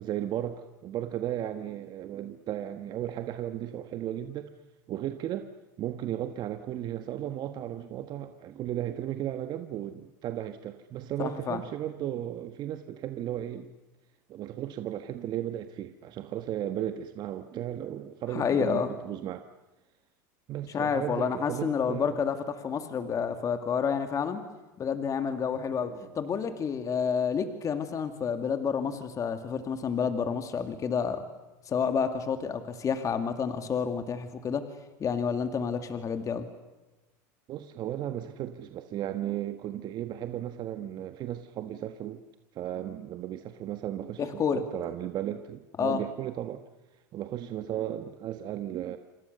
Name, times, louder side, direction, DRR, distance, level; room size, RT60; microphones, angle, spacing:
voice 1, 0.0-4.5 4.9-5.5 5.8-13.7 14.3-19.4 20.5-22.2 25.8-26.0 37.5-42.2 42.5-46.6 47.1-49.0, right 11 dB, 45° right, 8 dB, 1.4 m, -35 dB
voice 2, 11.2-11.6 18.3-18.9 20.7-22.4 22.6-24.4 24.8-31.2 31.7-34.7 35.0-36.5 44.2-44.6 45.8-46.0, left 6 dB, 35° left, 8 dB, 2.5 m, -29 dB
28.0 x 26.0 x 6.9 m, 1.1 s
supercardioid pair, 100°, 10 cm